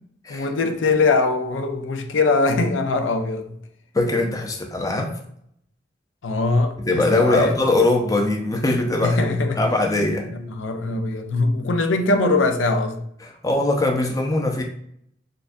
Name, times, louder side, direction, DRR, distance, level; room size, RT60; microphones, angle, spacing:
voice 1, 0.3-3.6 6.2-7.6 9.0-9.6 10.3-13.0, left 3 dB, 90° left, 0.5 m, -21 dB
voice 2, 3.9-5.1 6.8-9.2 9.5-10.3 13.2-14.6, left 2 dB, 20° left, 0.5 m, -21 dB
6.5 x 2.2 x 2.6 m
head